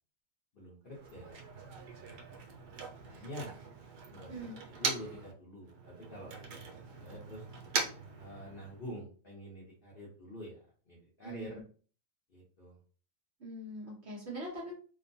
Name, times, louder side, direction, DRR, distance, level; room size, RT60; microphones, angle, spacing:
voice 1, 0.5-1.4 2.1-2.2 3.1-3.5 4.1-4.3 4.7-7.4 8.2-10.6 10.9-11.6 12.3-12.8, left 1 dB, 50° left, -4 dB, 0.7 m, -47 dB
Motor vehicle (road), 0.9-5.3 5.6-8.9, right 5 dB, 85° right, 1.2 m, -41 dB
voice 2, 11.2-11.6 13.4-14.7, right 1 dB, 50° right, -3 dB, 1.1 m, -42 dB
2.9 x 2.1 x 2.6 m, 0.41 s
omnidirectional pair, 1.7 m